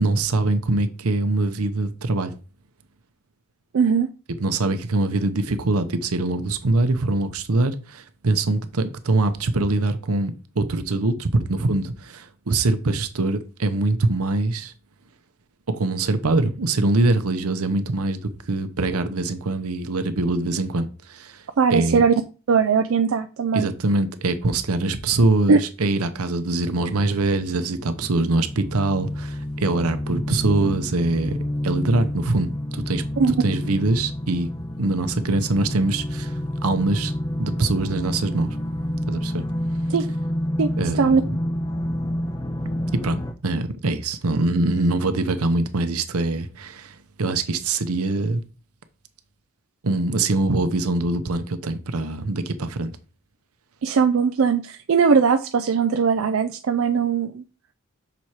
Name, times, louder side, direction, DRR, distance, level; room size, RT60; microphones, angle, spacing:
voice 1, 0.0-2.3 4.4-14.7 15.7-21.4 21.7-22.0 23.5-34.5 34.8-37.1 37.4-38.6 39.1-39.4 40.8-41.3 42.9-48.4 49.8-52.9, right 2 dB, 80° right, 0.8 m, -23 dB
voice 2, 3.7-4.1 21.6-22.1 22.5-23.7 25.5-25.6 33.2-33.3 39.9-40.1 40.6-40.7 41.0-41.2 53.8-57.4, right 5 dB, 65° right, 0.4 m, -19 dB
sound 1, 26.5-43.3, left 1 dB, 15° left, 0.5 m, -29 dB
6.1 x 4.3 x 4.7 m
head